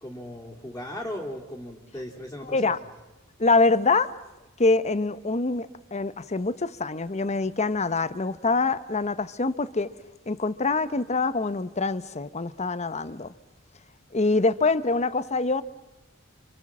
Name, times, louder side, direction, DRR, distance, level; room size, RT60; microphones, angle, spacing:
voice 1, 0.0-2.9, left 1 dB, 10° left, -3 dB, 2.7 m, -37 dB
voice 2, 2.5-2.8 3.4-4.1 4.6-9.9 10.3-13.3 14.1-15.6, left 3 dB, 35° left, 14 dB, 0.9 m, -25 dB
28.0 x 27.0 x 7.4 m, 1.1 s
head